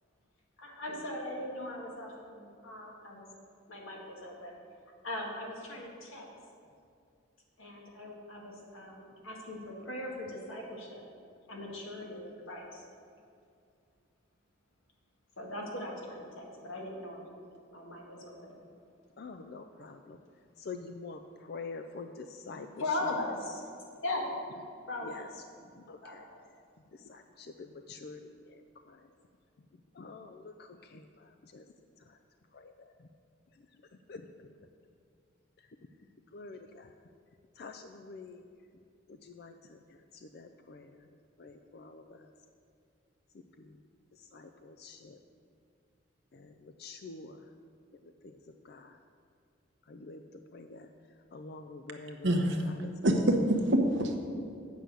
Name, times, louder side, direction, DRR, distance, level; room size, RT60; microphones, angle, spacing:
voice 1, 0.6-3.3 3.7-4.6 5.0-6.3 7.6-11.0 11.5-12.8 15.4-17.3 17.7-18.5 22.8-23.6 24.0-24.2 24.9-25.3 26.0-26.4, left 2 dB, 85° left, -2 dB, 2.0 m, -39 dB
voice 2, 19.2-20.2 20.6-23.1 25.0-25.3 25.7-26.3 26.9-29.1 29.9-31.7 32.1-32.2 32.5-33.1 34.1-34.5 36.3-36.9 37.6-38.4 39.1-41.0 41.4-42.3 43.3-43.8 44.2-45.2 46.3-47.4 48.0-48.4 48.6-49.0 49.9-50.2 50.5-50.9 51.3-53.2, left 4 dB, 50° left, 7 dB, 0.4 m, -47 dB
voice 3, 52.2-52.6 53.0-54.2, right 1 dB, 65° right, 3 dB, 1.1 m, -26 dB
8.2 x 6.2 x 8.1 m, 2.4 s
head